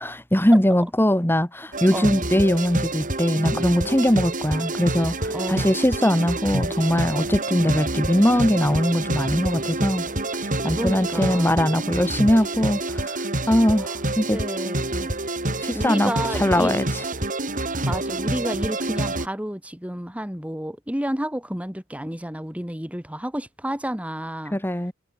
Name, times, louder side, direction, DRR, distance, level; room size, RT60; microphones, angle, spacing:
voice 1, 0.0-10.1 10.4-14.4 15.6-17.0 24.5-24.9, equal, 10° left, 1.8 m, -21 dB
sound 1, 1.7-19.3, right 2 dB, 35° right, 6.6 m, -27 dB
voice 2, 5.3-5.8 10.7-11.7 14.3-15.1 15.5-16.7 17.9-24.6, equal, 5° right, 1.8 m, -30 dB
head